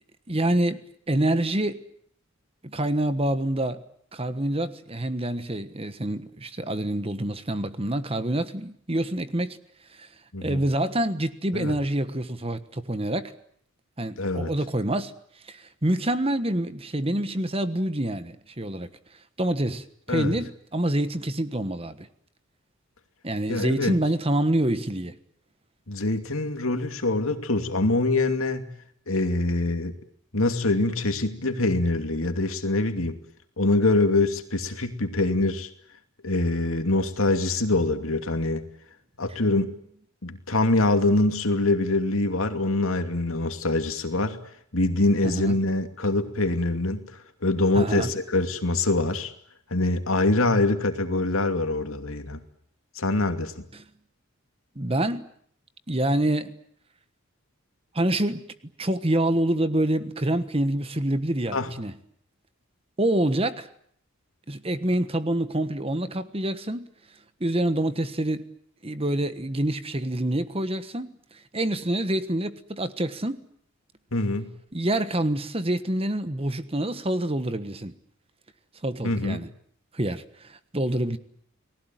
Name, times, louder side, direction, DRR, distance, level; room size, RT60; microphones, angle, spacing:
voice 1, 0.3-1.8 2.6-3.8 4.1-9.6 9.9-10.1 10.4-13.3 14.0-15.1 15.4-18.9 19.4-22.1 23.2-25.1 45.2-45.6 47.7-48.1 53.7-53.8 54.7-55.3 55.9-56.5 57.9-58.4 58.8-61.9 63.0-63.7 64.5-66.9 67.4-68.4 68.8-73.5 74.7-77.9 78.8-79.5 79.9-81.2, right 1 dB, 25° right, 11 dB, 1.3 m, -26 dB
voice 2, 14.2-14.5 20.1-20.3 23.5-23.9 25.9-28.7 29.1-29.9 30.3-33.2 33.6-35.7 36.2-38.6 39.2-39.7 40.2-44.4 44.7-47.0 47.4-49.3 49.7-52.4 53.0-53.6 61.5-61.7 74.1-74.5 79.0-79.4, left 2 dB, 75° left, 7 dB, 2.6 m, -24 dB
30.0 x 20.0 x 9.1 m, 0.65 s
head